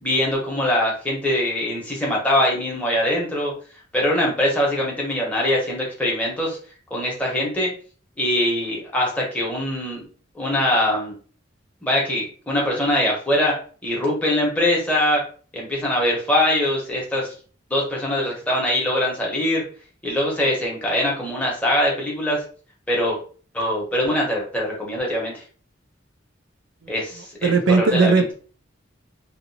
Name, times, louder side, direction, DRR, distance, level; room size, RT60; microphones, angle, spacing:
voice 1, 0.0-3.5 3.9-6.6 6.9-7.7 8.2-10.1 10.3-11.1 11.8-13.5 13.8-15.2 15.5-17.3 17.7-19.6 20.0-22.4 22.9-23.2 23.5-25.4 26.9-28.2, left 1 dB, 10° left, -3 dB, 1.0 m, -22 dB
voice 2, 27.4-28.3, right 4 dB, 85° right, 5 dB, 0.5 m, -17 dB
2.9 x 2.5 x 2.7 m, 0.41 s
head